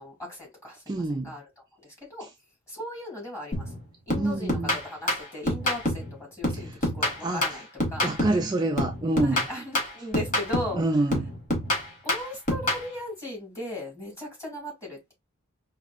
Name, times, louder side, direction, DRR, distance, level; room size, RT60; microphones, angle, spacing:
voice 1, 0.0-1.5 1.8-2.3 2.7-3.7 4.1-7.6 7.9-8.1 9.2-10.8 12.0-15.1, left 1 dB, 15° left, 2.6 m, -37 dB
voice 2, 0.9-1.4 2.2-2.3 4.1-4.8 6.5-6.8 7.2-7.6 8.0-9.4 10.7-11.3, right 2 dB, 20° right, 0.4 m, -27 dB
sound 1, 3.5-3.8 4.1-6.1 6.4-8.5 8.8-10.8 11.1-12.9, left 1 dB, 40° left, 1.3 m, -27 dB
4.9 x 2.7 x 2.3 m
head